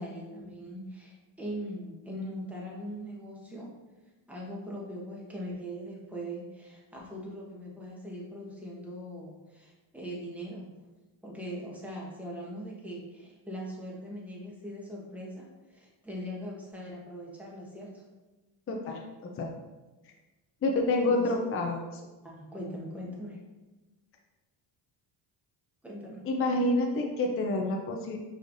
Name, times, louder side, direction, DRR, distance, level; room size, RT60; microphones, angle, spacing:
voice 1, 0.0-3.8 4.3-10.6 11.2-18.0 21.0-21.4 22.2-23.4 25.8-26.3, equal, 5° right, -4 dB, 1.2 m, -41 dB
voice 2, 18.7-19.5 20.6-22.0 26.2-28.2, left 2 dB, 30° left, 1 dB, 0.6 m, -28 dB
5.4 x 3.3 x 2.6 m, 1.1 s
cardioid pair, 100°, 45 cm